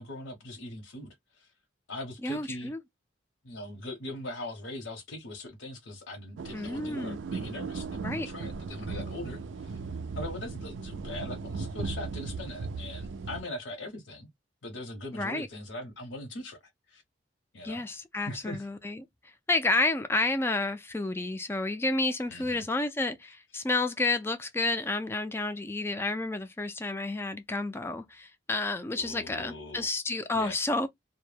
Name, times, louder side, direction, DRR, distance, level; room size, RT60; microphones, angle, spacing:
voice 1, 0.0-1.5 1.9-2.7 3.4-9.8 10.1-14.3 14.6-16.6 16.9-17.0 17.5-17.8 18.2-18.7 22.3-22.6 29.0-29.9 30.3-30.6, left 1 dB, 85° left, 0.7 m, -41 dB
voice 2, 2.2-2.8 6.5-7.2 8.0-8.3 15.1-15.5 17.6-19.1 19.5-30.9, left 2 dB, 15° left, 0.3 m, -30 dB
sound 1, 6.4-13.4, right 4 dB, 90° right, 0.4 m, -37 dB
2.1 x 2.0 x 3.1 m
head